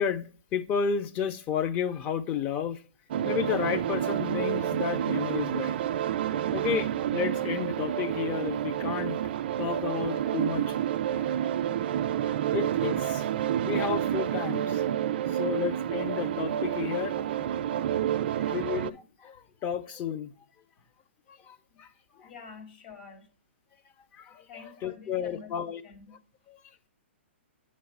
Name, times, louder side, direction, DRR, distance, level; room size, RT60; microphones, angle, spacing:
voice 1, 0.0-2.8 3.2-5.7 6.5-9.2 9.6-10.8 11.1-11.3 12.5-13.3 13.5-14.8 15.3-17.4 18.4-20.3 21.3-21.9 22.2-22.3 24.1-25.8 26.5-26.6, left 8 dB, 25° left, 0.5 m, -32 dB
sound 1, 3.1-18.9, right 10 dB, 50° right, 0.4 m, -29 dB
voice 2, 22.2-23.3 24.5-25.5 25.8-26.2, left 5 dB, 45° left, 1.9 m, -48 dB
8.5 x 3.1 x 5.6 m
hypercardioid pair, 155°, 7 cm